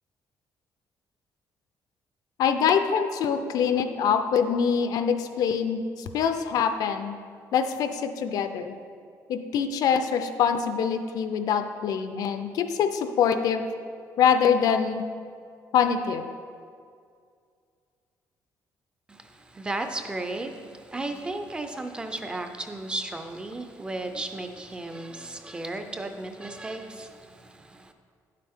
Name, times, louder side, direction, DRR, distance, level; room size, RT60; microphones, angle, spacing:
voice 1, 2.4-7.2 7.5-8.7 9.3-13.7 14.2-15.0 15.7-16.2, left 7 dB, 65° left, 8 dB, 0.5 m, -24 dB
voice 2, 19.5-27.9, right 2 dB, 15° right, 6 dB, 0.4 m, -34 dB
9.3 x 7.5 x 3.6 m, 2.2 s
cardioid pair, 180°, 7 cm